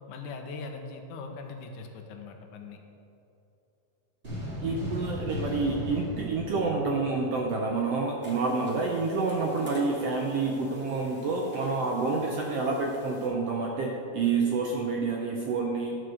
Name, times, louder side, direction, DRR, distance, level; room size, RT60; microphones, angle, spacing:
voice 1, 0.1-2.8, left 4 dB, 90° left, 4 dB, 2.3 m, -40 dB
sound 1, 4.2-7.7, left 1 dB, 20° right, 2.0 m, -36 dB
voice 2, 4.6-16.0, right 3 dB, 75° right, 0 dB, 1.4 m, -28 dB
sound 2, 8.2-13.3, left 1 dB, 10° left, 0.5 m, -48 dB
11.0 x 4.7 x 6.4 m, 2.8 s
omnidirectional pair, 3.6 m